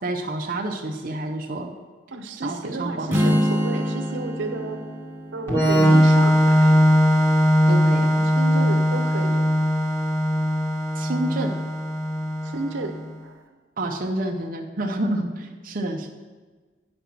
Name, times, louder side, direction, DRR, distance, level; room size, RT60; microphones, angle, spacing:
voice 1, 0.0-1.7 2.4-3.5 5.8-6.0 7.7-8.3 10.9-11.6 13.8-16.1, right 1 dB, 50° right, 2 dB, 0.7 m, -29 dB
voice 2, 2.1-4.8 5.3-6.8 8.2-9.5 12.4-13.4, right 2 dB, 85° right, 6 dB, 0.8 m, -32 dB
Strum, 3.1-7.3, equal, 10° right, 0.7 m, -27 dB
Organ, 5.5-13.0, equal, 15° left, 1.7 m, -19 dB
9.3 x 5.3 x 5.9 m, 1.3 s
head